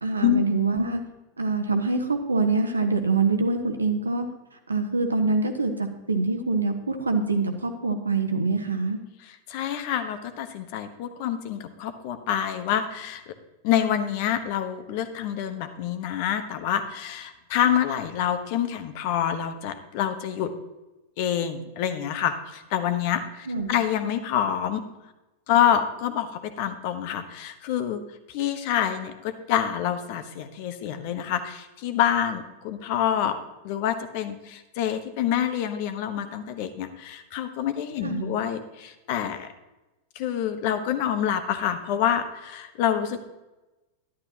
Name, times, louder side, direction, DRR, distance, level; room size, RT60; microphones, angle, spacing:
voice 1, 0.0-1.0 1.4-4.2 4.7-9.0 23.5-23.7 38.0-38.3, right 3 dB, 75° right, 7 dB, 1.1 m, -25 dB
voice 2, 9.5-13.2 13.6-20.5 21.2-24.8 25.5-28.0 28.3-33.4 33.6-39.5 40.1-43.2, left 10 dB, 45° left, 10 dB, 1.0 m, -27 dB
11.5 x 11.0 x 2.9 m, 1.1 s
figure-of-eight pair, 90°, 0 cm